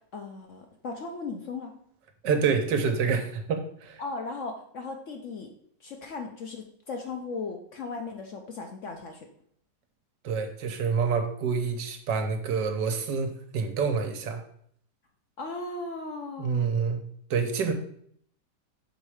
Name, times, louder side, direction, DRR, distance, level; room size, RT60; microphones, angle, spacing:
voice 1, 0.0-1.7 4.0-5.5 5.8-9.3 15.4-16.7, left 3 dB, 60° left, 3 dB, 0.8 m, -37 dB
voice 2, 2.2-4.0 10.2-14.4 16.4-17.0 17.3-17.7, right 5 dB, 80° right, 6 dB, 1.5 m, -27 dB
6.3 x 4.2 x 4.9 m, 0.65 s
omnidirectional pair, 1.9 m